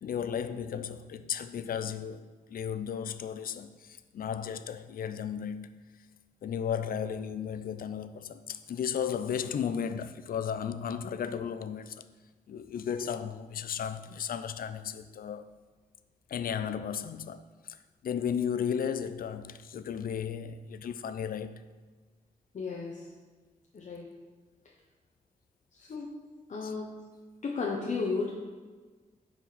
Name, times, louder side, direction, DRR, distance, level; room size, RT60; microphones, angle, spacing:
voice 1, 0.0-5.8 6.4-12.1 12.5-15.5 16.3-21.6 26.6-26.7, left 8 dB, 75° left, 0.5 m, -34 dB
voice 2, 22.5-23.0 23.7-24.1 25.7-26.2 26.5-27.1 27.4-28.3, left 4 dB, 55° left, 0.9 m, -34 dB
11.0 x 4.7 x 4.1 m
wide cardioid pair, 130°, 15 cm